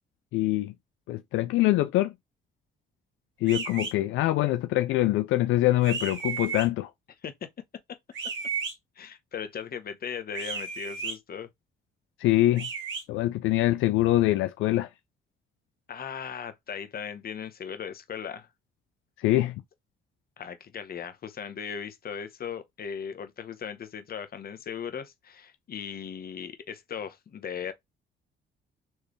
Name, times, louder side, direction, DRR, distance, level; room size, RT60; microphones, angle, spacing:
voice 1, 0.3-0.7 1.1-2.1 3.4-6.9 12.2-12.7 13.1-14.9 19.2-19.6, left 16 dB, 85° left, 0.4 m, -24 dB
sound 1, 3.5-3.9 5.8-6.7 8.1-8.7 10.3-11.2 12.6-13.0, right 5 dB, 70° right, 1.9 m, -33 dB
voice 2, 9.0-11.5 15.9-18.5 20.4-27.7, left 7 dB, 50° left, 1.0 m, -38 dB
4.5 x 3.3 x 3.1 m
cardioid pair, 90°, 20 cm